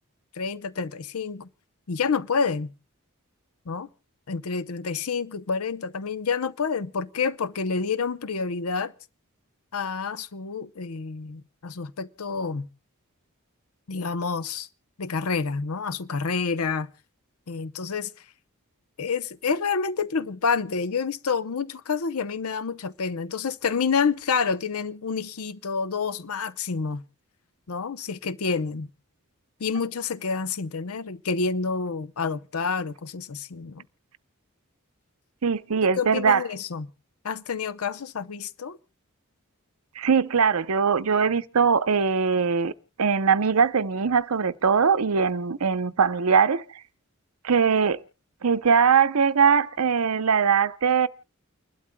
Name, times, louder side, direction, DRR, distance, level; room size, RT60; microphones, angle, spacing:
voice 1, 0.3-1.5 1.9-2.7 3.7-3.9 4.3-8.9 9.7-12.7 13.9-14.7 15.0-16.9 17.5-18.2 19.0-27.0 27.7-28.9 29.6-33.8 36.0-36.9 37.2-38.8, left 5 dB, 80° left, 0.7 m, -28 dB
voice 2, 35.4-36.4 40.0-42.7 43.0-46.6 47.4-48.0 48.4-51.1, right 6 dB, 80° right, 0.7 m, -21 dB
30.0 x 12.0 x 2.2 m
head